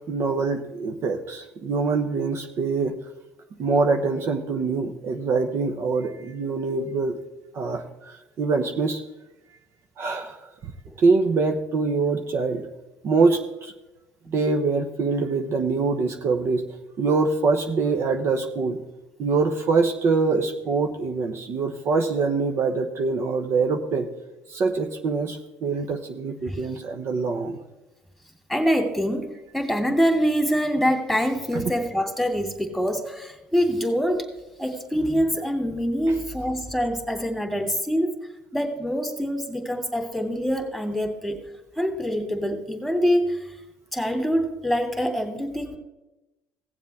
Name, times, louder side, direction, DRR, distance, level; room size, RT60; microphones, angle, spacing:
voice 1, 0.0-3.0 3.6-7.2 7.5-9.0 10.0-10.4 11.0-12.7 13.0-13.7 14.3-16.6 17.0-18.8 19.2-24.1 24.5-27.6 31.5-31.6, right 4 dB, 50° right, 5 dB, 1.0 m, -24 dB
voice 2, 28.5-34.3 34.6-38.1 38.5-41.4 41.8-43.6 43.9-45.8, equal, ahead, 4 dB, 2.5 m, -25 dB
17.5 x 7.3 x 3.5 m, 0.98 s
supercardioid pair, 95°, 5 cm